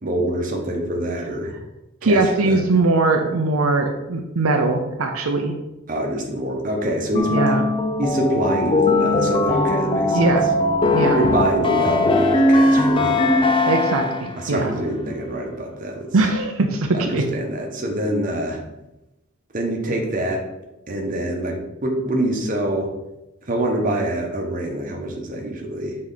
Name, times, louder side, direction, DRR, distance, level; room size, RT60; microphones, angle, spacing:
voice 1, 0.0-1.5 2.0-2.6 5.9-7.4 8.0-10.3 11.1-13.6 14.4-16.1 16.9-18.6 19.5-20.4 20.9-22.9 23.5-26.0, right 1 dB, 40° right, 0 dB, 1.0 m, -25 dB
voice 2, 2.0-5.6 7.3-7.6 10.1-10.5 10.9-11.2 13.7-14.8 16.1-17.2, right 3 dB, 80° right, 3 dB, 0.7 m, -20 dB
sound 1, 7.1-14.4, left 2 dB, 25° left, 0.4 m, -19 dB
6.5 x 4.3 x 4.0 m, 0.95 s
head